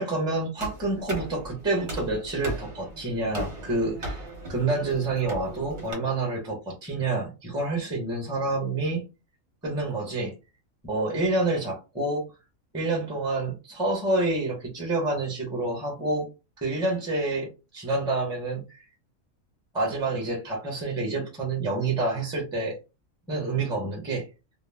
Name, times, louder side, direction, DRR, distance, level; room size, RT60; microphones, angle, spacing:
voice 1, 0.0-4.2 4.5-9.0 9.6-10.3 10.8-12.2 12.7-16.3 16.6-18.8 19.7-22.7 23.3-24.2, right 2 dB, 5° right, 0 dB, 0.6 m, -28 dB
sound 1, 0.6-5.9, right 1 dB, 40° right, 0.8 m, -37 dB
2.4 x 2.0 x 3.3 m, 0.29 s
omnidirectional pair, 1.5 m